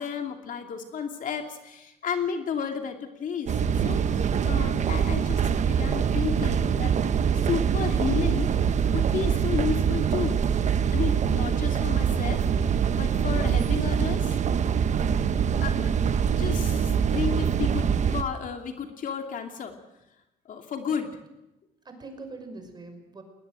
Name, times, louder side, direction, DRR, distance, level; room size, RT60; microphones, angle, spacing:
voice 1, 0.0-6.9 7.3-8.5 8.9-10.4 10.9-12.5 13.0-14.4 15.6-15.8 16.3-17.8 18.1-19.7 20.4-21.2, left 7 dB, 50° left, 5 dB, 2.7 m, -32 dB
sound 1, 3.5-18.2, right 7 dB, 45° right, 1.2 m, -24 dB
voice 2, 21.8-23.2, right 3 dB, 25° right, 6 dB, 5.7 m, -44 dB
20.5 x 20.0 x 7.7 m, 0.94 s
cardioid pair, 110°, 17 cm